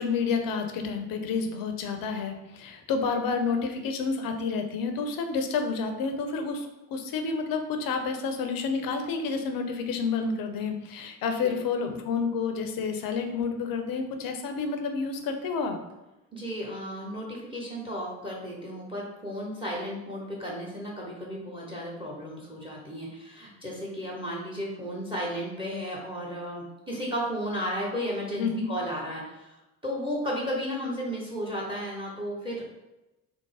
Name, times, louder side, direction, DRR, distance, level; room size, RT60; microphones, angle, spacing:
voice 1, 0.0-15.8 28.4-28.7, left 5 dB, 45° left, 6 dB, 0.6 m, -29 dB
voice 2, 16.3-29.6 29.8-32.8, equal, 10° right, -3 dB, 0.8 m, -34 dB
3.4 x 2.0 x 3.3 m, 0.98 s
figure-of-eight pair, 45°, 48 cm